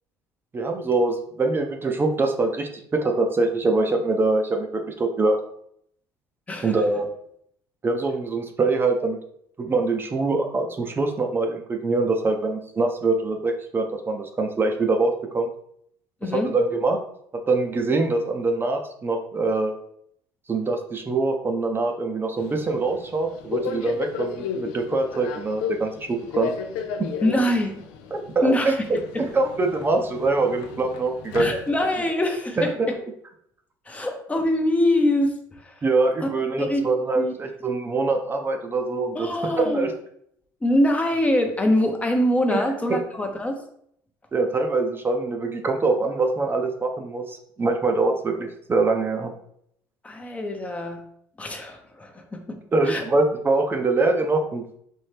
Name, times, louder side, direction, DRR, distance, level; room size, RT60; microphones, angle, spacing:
voice 1, 0.5-5.4 6.6-7.2 7.8-9.2 9.6-15.5 16.2-17.0 17.5-19.7 20.5-26.5 27.0-27.1 28.1-29.0 29.3-31.5 32.6-32.9 35.8-39.9 42.5-43.0 44.3-49.3 52.7-54.8, right 3 dB, 30° right, 3 dB, 0.6 m, -24 dB
voice 2, 16.2-16.5 27.2-27.7 28.4-28.8 29.1-29.3 31.4-33.0 33.9-35.3 35.6-35.7 36.2-36.3 36.6-36.8 37.2-37.3 39.1-39.9 40.6-43.6 50.0-51.1 51.4-53.0, left 1 dB, 20° left, 4 dB, 0.7 m, -24 dB
Subway metro underground, 22.4-32.1, left 6 dB, 85° left, 0.5 m, -35 dB
4.3 x 3.1 x 3.3 m, 0.69 s
supercardioid pair, 85°, 8 cm